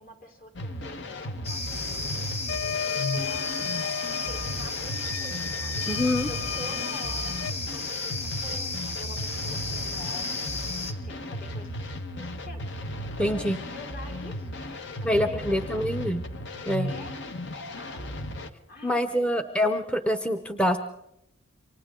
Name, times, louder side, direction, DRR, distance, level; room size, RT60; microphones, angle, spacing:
voice 1, 0.0-4.0 4.3-5.9 6.3-16.1 16.8-17.2 17.7-18.2 18.7-20.4, left 2 dB, 50° left, 2 dB, 3.7 m, -46 dB
sound 1, 0.5-18.5, left 1 dB, 65° left, 1.2 m, -35 dB
sound 2, 1.4-10.9, left 3 dB, 35° left, 1.9 m, -34 dB
sound 3, 2.5-7.5, left 8 dB, 80° left, 0.7 m, -34 dB
voice 2, 5.9-6.3 13.2-13.6 15.0-16.2 16.7-16.9 18.8-20.8, equal, 5° left, 7 dB, 0.7 m, -25 dB
28.5 x 25.0 x 3.7 m, 0.82 s
head